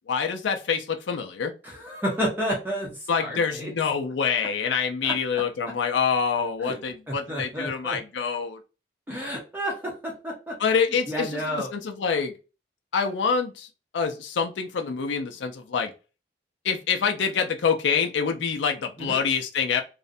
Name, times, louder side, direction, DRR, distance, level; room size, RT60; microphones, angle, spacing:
voice 1, 0.1-1.5 3.1-8.6 10.6-12.3 12.9-13.7 13.9-15.9 16.6-19.8, left 6 dB, 85° left, 4 dB, 0.4 m, -26 dB
voice 2, 1.6-3.7 5.0-5.1 6.6-6.8 7.1-8.0 9.1-10.6 11.1-11.7 19.0-19.2, equal, 10° right, -3 dB, 0.6 m, -31 dB
2.4 x 2.1 x 2.6 m, 0.31 s
head